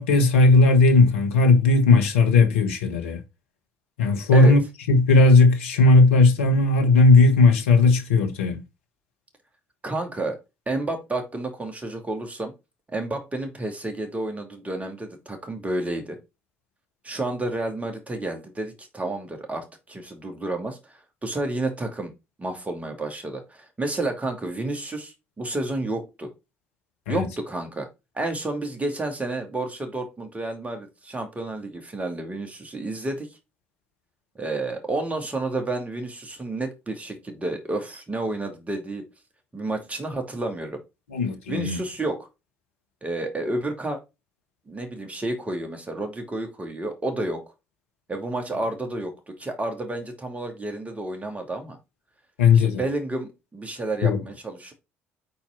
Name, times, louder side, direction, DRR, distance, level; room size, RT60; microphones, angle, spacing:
voice 1, 0.0-3.2 4.0-4.6 4.9-8.6 27.1-27.3 41.1-41.8 52.4-52.8 54.0-54.2, left 3 dB, 80° left, 1.3 m, -17 dB
voice 2, 9.8-10.4 10.7-12.5 12.9-16.2 17.0-22.1 22.4-26.3 27.1-27.9 28.1-33.3 34.3-39.0 39.5-40.8 41.5-42.3 43.0-44.0 44.7-47.4 48.1-51.8 52.5-54.7, right 2 dB, 20° right, 2.7 m, -30 dB
5.5 x 4.4 x 5.8 m
hypercardioid pair, 55°, 7 cm